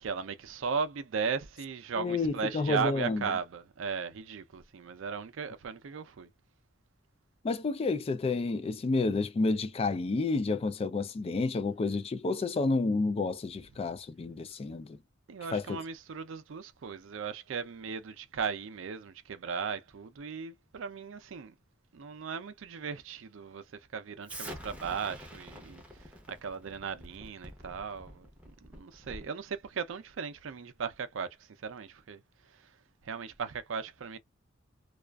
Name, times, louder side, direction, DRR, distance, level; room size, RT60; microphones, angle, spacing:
voice 1, 0.0-6.3 15.3-21.5 21.9-23.6 23.9-28.3 28.6-32.7 33.0-34.2, right 6 dB, 75° right, 0.4 m, -37 dB
voice 2, 2.0-3.3 7.4-15.0 15.5-15.8, left 3 dB, 30° left, 0.3 m, -30 dB
Explosion, 24.3-29.4, equal, 5° right, 0.6 m, -47 dB
2.4 x 2.3 x 2.2 m
head